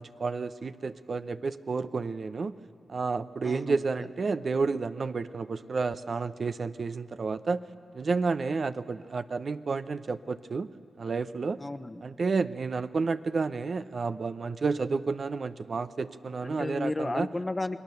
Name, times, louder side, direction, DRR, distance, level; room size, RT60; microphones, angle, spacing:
voice 1, 0.0-2.5 2.9-7.6 7.9-10.7 11.0-11.6 12.0-17.3, right 4 dB, 55° right, 11 dB, 0.7 m, -31 dB
voice 2, 3.4-4.1 11.6-12.0 16.4-17.8, left 2 dB, 25° left, 11 dB, 1.0 m, -33 dB
29.0 x 20.5 x 6.9 m, 2.7 s
cardioid pair, 60°, 0 cm